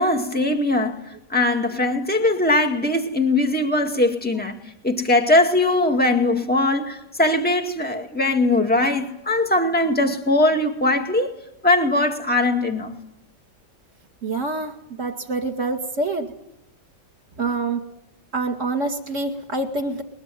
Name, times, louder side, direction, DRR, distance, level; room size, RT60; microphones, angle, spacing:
voice 1, 0.0-11.4 11.6-13.0, left 2 dB, 5° left, 2.1 m, -20 dB
voice 2, 14.2-14.7 15.0-16.3 17.4-17.8 18.3-20.0, right 3 dB, 45° right, 2.7 m, -26 dB
22.0 x 21.5 x 9.3 m
omnidirectional pair, 1.9 m